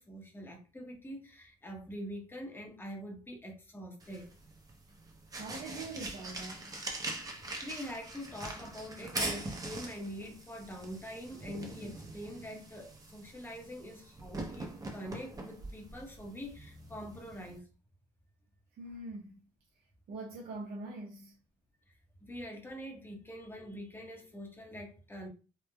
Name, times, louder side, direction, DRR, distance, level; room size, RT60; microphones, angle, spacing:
voice 1, 0.0-4.3 7.6-17.7 21.9-22.0 22.3-25.3, equal, 15° left, 0.8 m, -44 dB
sound 1, 4.0-17.6, right 2 dB, 20° right, 0.7 m, -43 dB
voice 2, 5.4-6.8 18.8-19.4 20.1-21.4, right 2 dB, 60° right, 0.6 m, -43 dB
3.1 x 2.0 x 2.2 m
cardioid pair, 110°, 17 cm